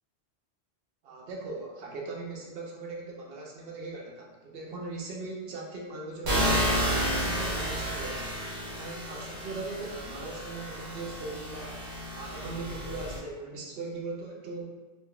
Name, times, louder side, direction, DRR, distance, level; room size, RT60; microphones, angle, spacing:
voice 1, 1.0-6.7 6.9-8.4 8.8-11.8 12.1-14.8, right 3 dB, 65° right, -1 dB, 0.8 m, -39 dB
sound 1, 6.3-13.2, equal, 85° right, 1.0 m, -31 dB
2.5 x 2.3 x 3.5 m, 1.2 s
omnidirectional pair, 1.1 m